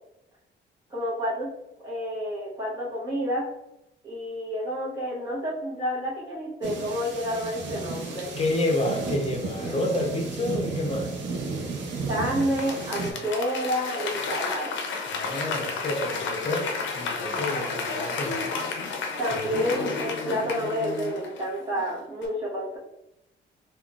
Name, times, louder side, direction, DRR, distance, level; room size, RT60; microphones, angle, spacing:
voice 1, 0.9-1.5 1.8-3.5 4.0-8.3 12.1-14.8 17.5-18.2 19.2-22.8, equal, 20° right, 1.1 m, -29 dB
sound 1, 6.6-13.1, right 3 dB, 65° right, 0.7 m, -33 dB
voice 2, 8.4-11.2 15.1-18.4 19.3-19.6, left 1 dB, 30° left, 0.7 m, -29 dB
Applause / Crowd, 12.4-21.8 22.2-22.3, left 4 dB, 70° left, 0.5 m, -32 dB
3.6 x 2.4 x 2.3 m
cardioid pair, 90°, 20 cm